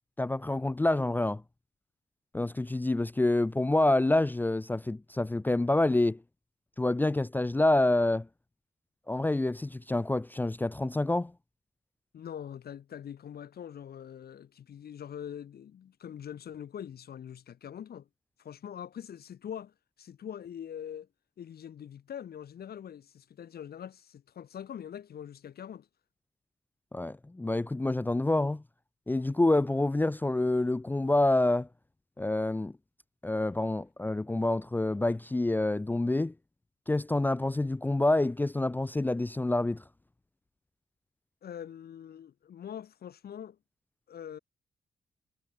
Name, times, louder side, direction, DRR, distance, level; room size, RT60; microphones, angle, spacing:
voice 1, 0.2-1.4 2.3-6.2 6.8-8.3 9.1-11.3 26.9-28.6 29.1-31.7 32.2-32.7 33.2-36.3 36.9-39.8, left 2 dB, 10° left, 0.5 m, -27 dB
voice 2, 12.1-18.1 18.4-21.1 21.4-25.9 41.4-43.6 44.1-44.4, left 9 dB, 75° left, 2.9 m, -43 dB
wide cardioid pair, 155°, 16 cm